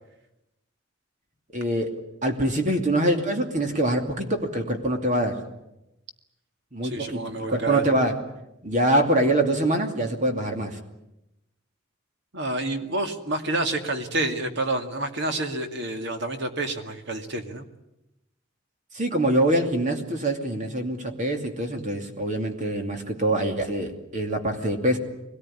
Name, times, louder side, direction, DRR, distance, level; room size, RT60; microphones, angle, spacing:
voice 1, 1.5-1.9 2.2-5.4 6.7-7.2 7.5-8.2 8.6-10.8 18.9-25.0, right 1 dB, 40° right, 4 dB, 2.7 m, -24 dB
voice 2, 6.8-7.8 12.3-17.6, right 2 dB, 60° right, 6 dB, 2.2 m, -28 dB
24.0 x 18.5 x 9.9 m, 0.90 s
head